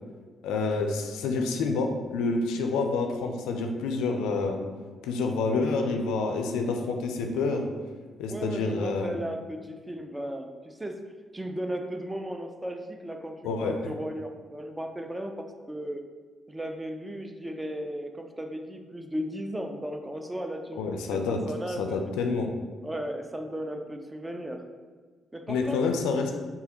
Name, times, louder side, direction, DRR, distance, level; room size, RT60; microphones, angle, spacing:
voice 1, 0.4-4.6 5.0-7.6 8.2-9.1 13.4-13.8 20.7-21.4 21.8-22.5 25.5-26.3, left 4 dB, 75° left, 4 dB, 0.4 m, -28 dB
voice 2, 8.3-11.0 11.3-16.0 16.5-21.2 21.5-22.1 22.8-24.6 25.3-25.8, equal, 15° right, 5 dB, 0.5 m, -35 dB
4.8 x 2.7 x 3.0 m, 1.5 s
hypercardioid pair, 40°, 0 cm